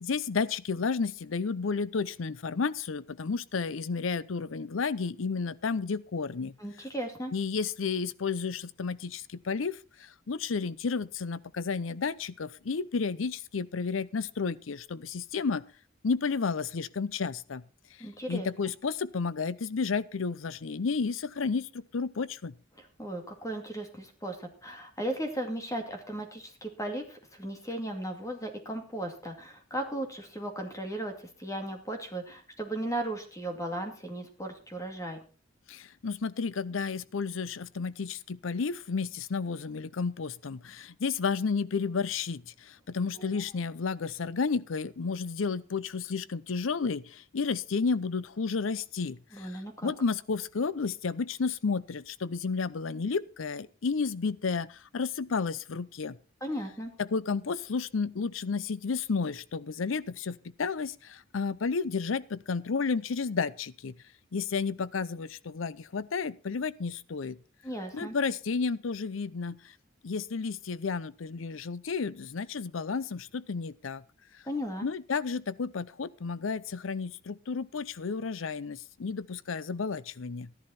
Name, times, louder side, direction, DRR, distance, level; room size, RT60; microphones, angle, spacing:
voice 1, 0.0-6.5 7.3-15.6 16.0-17.6 18.3-22.5 35.7-56.2 57.0-63.9 64.3-67.4 67.9-69.6 70.0-74.0 74.8-80.5, left 5 dB, 85° left, 0.6 m, -32 dB
voice 2, 6.6-7.3 18.0-18.5 22.8-31.1 31.4-35.2 43.1-43.3 49.3-49.9 56.4-56.9 67.6-68.2 74.5-74.9, right 1 dB, 15° left, 2.4 m, -36 dB
13.0 x 11.0 x 4.3 m
head